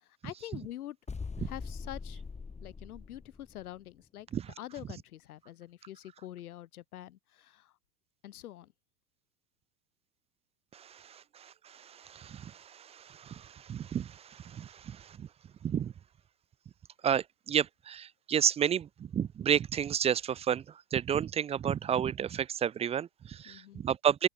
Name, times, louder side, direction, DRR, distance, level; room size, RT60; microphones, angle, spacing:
voice 1, 0.2-1.0 1.4-2.2 2.6-4.3 4.6-7.7 8.2-8.7 23.5-23.8, left 13 dB, 80° left, 4.5 m, -45 dB
sound 1, 1.1-3.8, left 4 dB, 15° left, 8.0 m, -42 dB
voice 2, 10.7-15.3 15.6-15.9 17.0-20.6 20.9-24.3, right 9 dB, 15° right, 0.4 m, -31 dB
open air
hypercardioid pair, 115°, 43 cm